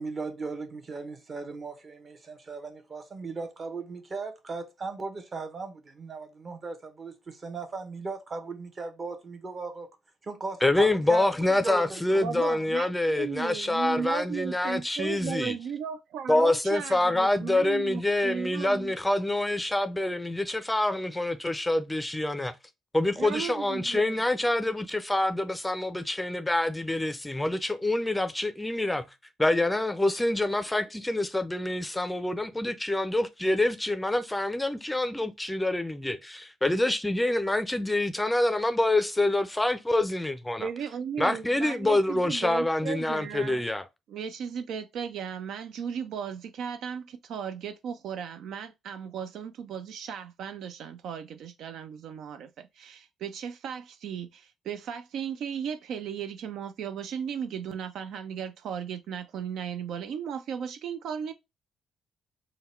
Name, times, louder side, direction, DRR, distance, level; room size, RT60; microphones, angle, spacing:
voice 1, 0.0-9.9 10.2-12.2, right 4 dB, 40° right, 0.9 m, -37 dB
voice 2, 10.6-15.6 16.3-22.5 22.9-29.1 29.4-40.7 41.2-43.9, left 1 dB, 10° left, 0.4 m, -26 dB
voice 3, 12.2-12.9 13.2-18.9 23.2-24.2 40.6-43.6 44.1-61.3, right 7 dB, 75° right, 0.4 m, -36 dB
3.7 x 2.2 x 4.3 m
cardioid pair, 90°, 0 cm